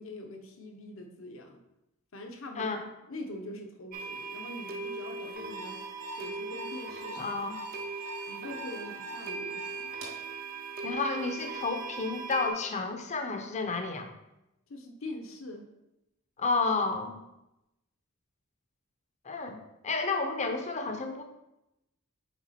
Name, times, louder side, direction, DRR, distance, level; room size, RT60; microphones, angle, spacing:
voice 1, 0.0-1.6 2.1-2.8 3.1-5.8 6.1-7.3 8.3-9.9 14.7-15.7, left 1 dB, 65° left, 4 dB, 0.9 m, -43 dB
sound 1, 3.9-12.5, right 4 dB, 45° right, 0.6 m, -39 dB
Alarm, 5.5-10.2, right 1 dB, 75° right, 2.4 m, -44 dB
voice 2, 7.2-7.6 10.8-14.1 16.4-17.2 19.2-21.2, left 3 dB, 35° left, 6 dB, 0.6 m, -31 dB
6.0 x 4.7 x 4.2 m, 0.91 s
head